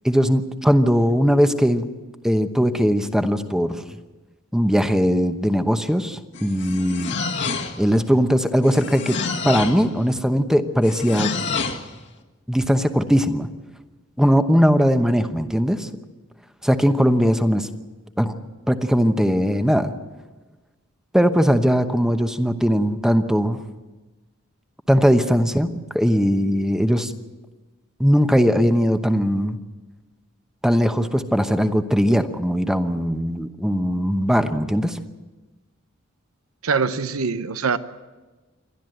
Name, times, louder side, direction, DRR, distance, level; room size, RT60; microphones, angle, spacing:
voice 1, 0.0-1.9 2.2-3.8 4.5-7.1 7.8-9.2 9.4-11.3 12.5-13.5 14.2-15.9 16.6-17.7 18.2-18.3 18.7-19.9 21.1-23.6 24.9-25.7 25.9-27.1 28.0-29.6 30.6-35.0, equal, 5° right, 8 dB, 0.9 m, -19 dB
sound 1, 6.3-7.9 8.6-9.9 10.8-11.9, left 4 dB, 60° left, 1.6 m, -28 dB
voice 2, 36.6-37.8, right 5 dB, 90° right, 13 dB, 0.8 m, -23 dB
28.0 x 12.0 x 7.8 m, 1.2 s
head